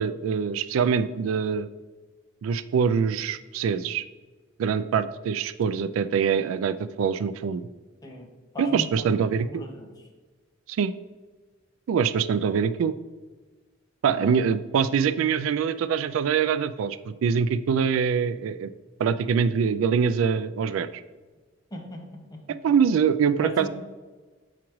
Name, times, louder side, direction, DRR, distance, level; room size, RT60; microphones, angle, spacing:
voice 1, 0.0-1.7 2.4-4.0 4.6-7.6 8.6-9.6 10.7-10.9 11.9-12.9 14.0-18.7 19.0-21.0 22.6-23.7, right 6 dB, 85° right, 13 dB, 0.3 m, -24 dB
voice 2, 8.5-9.1 9.4-10.1 14.2-14.3 21.7-22.6 23.4-23.7, left 1 dB, 20° left, 1 dB, 0.9 m, -38 dB
7.2 x 4.9 x 3.0 m, 1.3 s
head